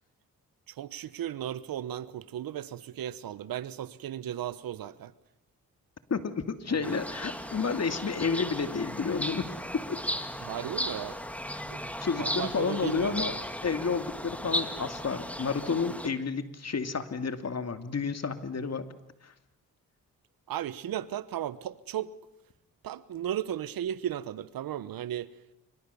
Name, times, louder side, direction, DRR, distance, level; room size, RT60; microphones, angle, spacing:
voice 1, 0.7-5.1 6.7-7.0 10.4-11.2 11.7-11.8 12.2-13.3 20.5-22.1 22.8-25.3, right 11 dB, 80° right, 17 dB, 1.1 m, -35 dB
voice 2, 6.1-9.5 9.7-10.0 11.5-11.7 12.0-13.4 13.6-18.9 19.2-19.3, left 5 dB, 50° left, 9 dB, 2.6 m, -31 dB
sound 1, 6.8-16.1, equal, 5° left, 2.6 m, -36 dB
27.0 x 25.0 x 7.0 m, 0.85 s
cardioid pair, 65°, 34 cm